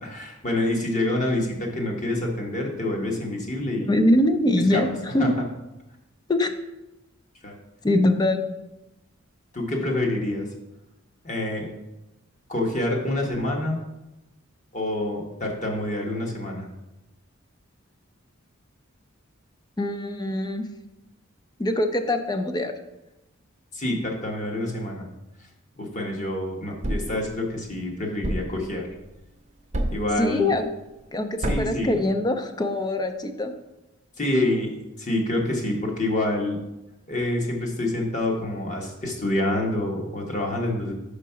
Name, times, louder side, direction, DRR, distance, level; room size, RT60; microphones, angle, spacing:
voice 1, 0.0-4.0 4.7-4.8 5.2-5.3 7.4-7.5 9.5-10.5 11.2-11.6 12.5-13.8 14.7-16.7 23.7-25.1 25.8-28.9 29.9-30.5 31.5-31.9 34.2-34.7 35.0-36.6 37.1-40.9, left 1 dB, 35° left, 0 dB, 1.2 m, -27 dB
voice 2, 3.8-5.4 6.3-6.6 7.8-8.4 19.8-20.7 21.6-22.7 30.2-30.7 31.1-33.5, left 1 dB, 20° left, 8 dB, 0.4 m, -23 dB
Thump thud, 26.8-27.2 28.2-28.6 29.7-30.1 31.4-31.8, right 1 dB, 35° right, 0.7 m, -27 dB
5.1 x 4.7 x 5.6 m, 0.95 s
head